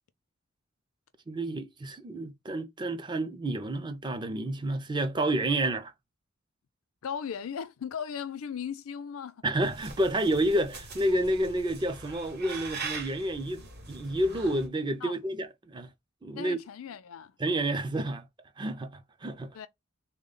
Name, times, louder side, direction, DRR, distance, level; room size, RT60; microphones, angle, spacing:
voice 1, 1.3-5.9 9.4-13.6 13.9-15.9 16.2-16.6 17.4-18.3 18.6-19.6, right 1 dB, 20° right, 0.4 m, -29 dB
voice 2, 7.0-9.4 15.0-15.1 16.3-17.3 19.5-19.7, left 7 dB, 85° left, 0.4 m, -37 dB
sound 1, 9.6-14.7, right 4 dB, 50° right, 0.9 m, -42 dB
3.5 x 2.2 x 3.7 m
head